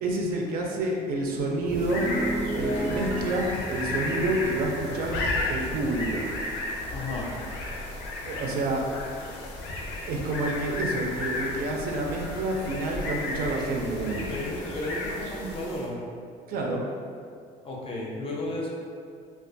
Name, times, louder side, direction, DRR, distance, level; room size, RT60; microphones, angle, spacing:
voice 1, 0.0-2.1 2.6-5.2 5.5-6.2 8.3-8.8 10.1-14.3 16.5-16.8, right 2 dB, 60° right, 0 dB, 0.4 m, -28 dB
sound 1, 1.4-6.0 6.3-6.6, right 1 dB, 85° right, 0.8 m, -35 dB
sound 2, 1.7-16.0, left 2 dB, 90° left, 0.5 m, -34 dB
voice 2, 6.9-7.3 14.3-16.0 17.6-18.7, left 1 dB, 35° left, -2 dB, 0.5 m, -33 dB
2.4 x 2.2 x 2.5 m, 2.3 s
cardioid pair, 110°, 17 cm